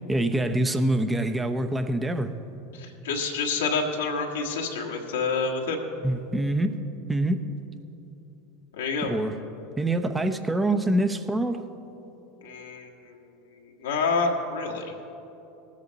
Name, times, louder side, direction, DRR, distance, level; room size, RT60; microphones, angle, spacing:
voice 1, 0.1-2.3 6.0-6.8 7.1-7.5 9.0-9.4 9.8-11.7, right 1 dB, 10° right, 0.8 m, -25 dB
voice 2, 2.7-5.8 8.8-9.1 12.4-13.2 13.8-14.9, left 4 dB, 85° left, 1.5 m, -28 dB
19.5 x 8.3 x 4.1 m
hypercardioid pair, 90°, 0 cm